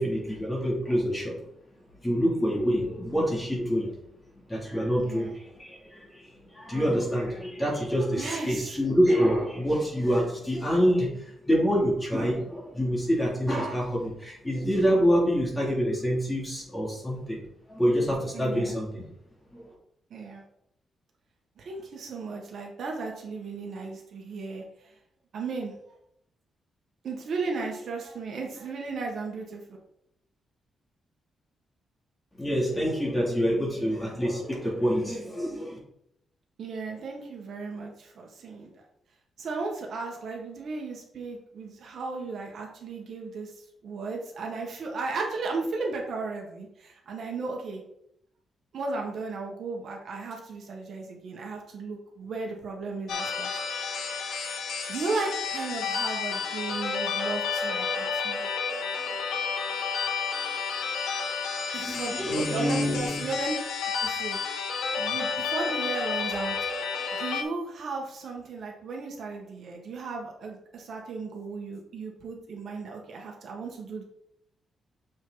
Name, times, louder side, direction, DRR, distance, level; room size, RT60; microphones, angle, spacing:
voice 1, 0.0-1.3 2.0-3.9 4.5-5.3 5.6-17.4 17.7-19.0 19.5-19.6 32.4-35.8 61.7-63.2, equal, 10° left, -4 dB, 3.0 m, -26 dB
voice 2, 5.0-5.3 8.2-8.8 18.3-18.8 20.1-20.4 21.6-24.9 25.3-25.7 27.0-29.6 36.6-38.8 39.4-47.8 48.7-53.6 54.9-58.4 61.7-63.5 64.0-64.4 65.0-66.6 67.1-74.0, right 3 dB, 60° right, 0 dB, 1.7 m, -35 dB
sound 1, 53.1-67.4, left 5 dB, 90° left, 1.4 m, -31 dB
7.3 x 6.2 x 4.0 m, 0.75 s
cardioid pair, 140°, 0 cm